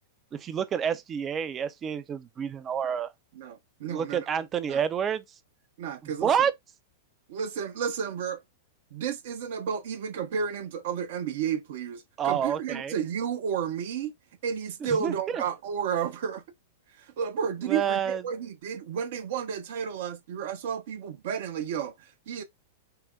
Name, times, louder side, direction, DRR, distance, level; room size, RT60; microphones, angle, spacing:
voice 1, 0.3-3.1 3.8-5.2 6.0-6.5 12.2-13.0 14.8-15.4 17.7-18.2, right 8 dB, 25° right, 0.6 m, -28 dB
voice 2, 3.3-4.2 4.7-4.8 5.8-6.3 7.3-8.4 8.9-14.1 14.4-16.4 17.2-22.4, right 7 dB, 60° right, 1.0 m, -32 dB
5.8 x 2.2 x 4.0 m
figure-of-eight pair, 100°, 0 cm